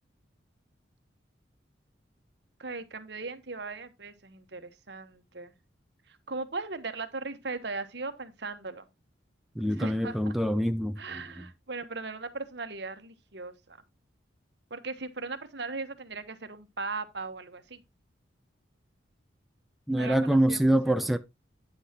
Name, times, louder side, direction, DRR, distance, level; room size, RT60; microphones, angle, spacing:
voice 1, 2.6-5.5 6.1-8.9 9.8-10.3 11.0-13.8 14.7-17.8 19.9-20.9, right 3 dB, 60° right, 1.3 m, -38 dB
voice 2, 9.6-11.4 19.9-21.2, right 1 dB, ahead, 0.4 m, -25 dB
9.9 x 8.0 x 3.0 m
head